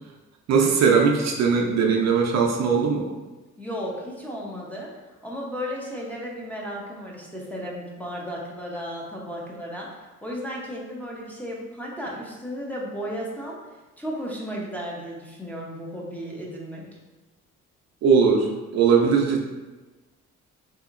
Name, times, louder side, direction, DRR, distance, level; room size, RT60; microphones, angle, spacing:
voice 1, 0.5-3.0 18.0-19.4, right 5 dB, 60° right, 1 dB, 0.5 m, -20 dB
voice 2, 3.6-4.9 5.2-13.6 14.0-16.9, equal, 5° left, -4 dB, 0.7 m, -34 dB
3.7 x 2.8 x 2.5 m, 1.2 s
cardioid pair, 90°, 30 cm